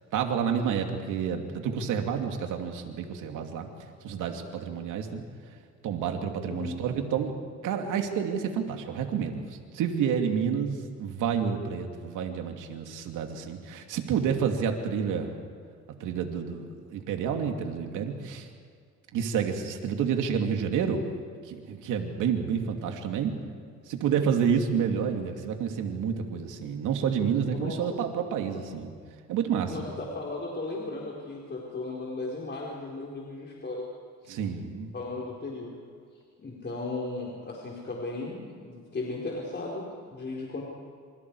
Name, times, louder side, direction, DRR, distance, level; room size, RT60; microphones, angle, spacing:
voice 1, 0.1-3.7 4.0-5.2 5.8-7.3 7.6-15.3 16.0-18.5 19.1-21.1 21.4-23.4 23.9-28.9 29.3-29.7 34.3-34.9, right 7 dB, 90° right, 4 dB, 2.7 m, -29 dB
voice 2, 29.7-33.9 34.2-34.4 34.9-35.8 36.4-40.6, left 2 dB, 35° left, -3 dB, 4.5 m, -36 dB
29.0 x 26.5 x 4.9 m, 2.1 s
cardioid pair, 90°, 30 cm